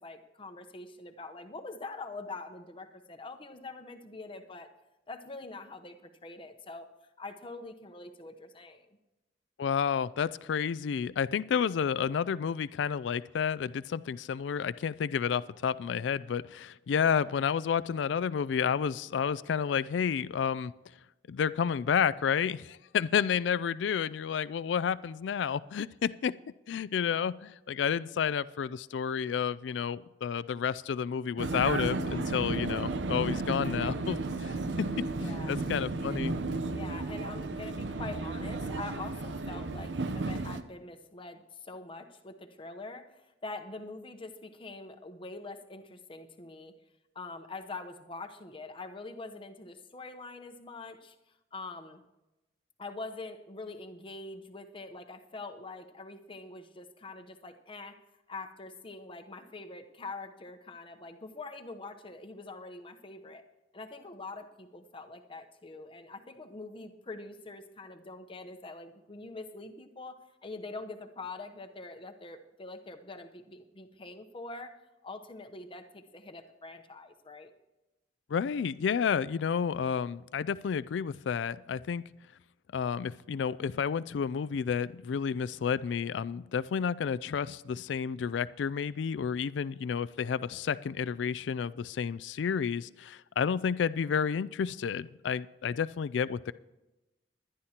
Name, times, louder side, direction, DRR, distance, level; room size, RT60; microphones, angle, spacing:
voice 1, 0.0-4.7 5.1-6.9 7.2-9.0 35.2-35.6 36.7-46.8 47.1-51.1 51.5-52.0 52.8-58.0 58.3-63.4 63.7-74.8 75.0-77.5, left 3 dB, 30° left, 6 dB, 0.9 m, -44 dB
voice 2, 9.6-20.7 21.3-26.3 26.7-36.3 78.3-82.1 82.7-96.5, left 7 dB, 80° left, 17 dB, 0.4 m, -31 dB
Vehicle, 31.4-40.6, right 2 dB, 75° right, 0.7 m, -33 dB
20.0 x 11.0 x 2.9 m, 1.0 s
head